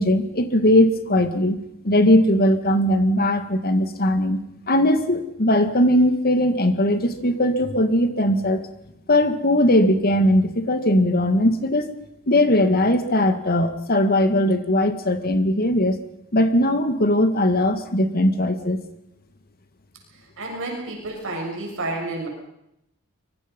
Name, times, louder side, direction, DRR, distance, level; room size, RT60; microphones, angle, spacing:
voice 1, 0.0-1.6 1.8-4.4 4.7-8.6 9.1-11.9 12.3-15.9 16.3-18.8, left 1 dB, 45° left, 8 dB, 2.2 m, -19 dB
voice 2, 20.4-22.3, right 2 dB, 65° right, 1 dB, 7.0 m, -30 dB
25.0 x 23.5 x 5.5 m, 0.79 s
head